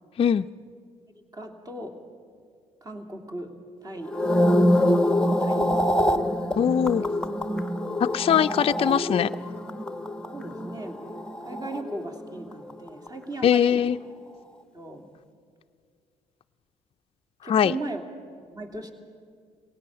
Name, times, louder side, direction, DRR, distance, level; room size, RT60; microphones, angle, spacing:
voice 1, 1.1-2.0 2.8-3.5 3.8-4.2 4.8-5.9 6.9-7.0 10.3-11.0 11.4-13.8 14.7-15.1 17.4-18.0 18.4-18.9, right 2 dB, 25° right, 4 dB, 2.8 m, -37 dB
sound 1, 4.0-12.4 12.7-13.1, left 1 dB, 5° left, 1.1 m, -25 dB
voice 2, 6.6-7.0 8.1-9.3 13.4-14.0 17.5-17.7, left 8 dB, 40° left, 9 dB, 0.4 m, -21 dB
20.0 x 17.5 x 8.5 m, 2.2 s
supercardioid pair, 65°, 15 cm